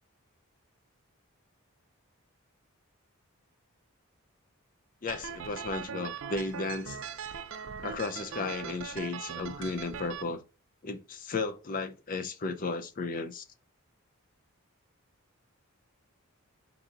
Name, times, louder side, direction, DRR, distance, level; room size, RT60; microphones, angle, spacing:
voice 1, 5.0-7.0 7.8-10.4 10.8-13.4, left 3 dB, 40° left, 0.5 m, -34 dB
sound 1, 5.1-10.2, right 7 dB, 55° right, 0.4 m, -40 dB
4.1 x 2.7 x 3.7 m
head